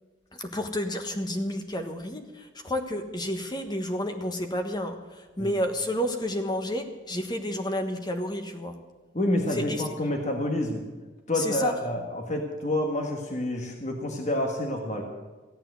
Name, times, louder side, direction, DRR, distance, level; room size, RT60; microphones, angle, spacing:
voice 1, 0.3-8.7 9.5-9.8 11.4-11.7, left 1 dB, 20° left, 6 dB, 1.4 m, -30 dB
voice 2, 9.1-10.8 11.3-15.0, left 1 dB, 35° left, 2 dB, 1.6 m, -28 dB
15.5 x 8.8 x 8.1 m, 1.3 s
head